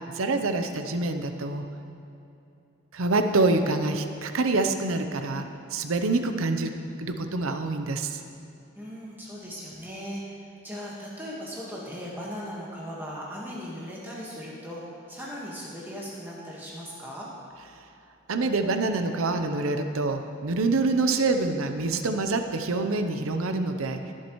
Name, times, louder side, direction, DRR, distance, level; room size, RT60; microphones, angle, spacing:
voice 1, 0.1-1.6 2.9-5.5 5.7-6.7 7.0-8.2 18.3-24.0, right 3 dB, 75° right, 7 dB, 0.7 m, -26 dB
voice 2, 8.8-10.2 10.6-14.8 15.1-17.3, equal, 10° right, -5 dB, 1.5 m, -38 dB
21.0 x 7.4 x 3.1 m, 2.8 s
head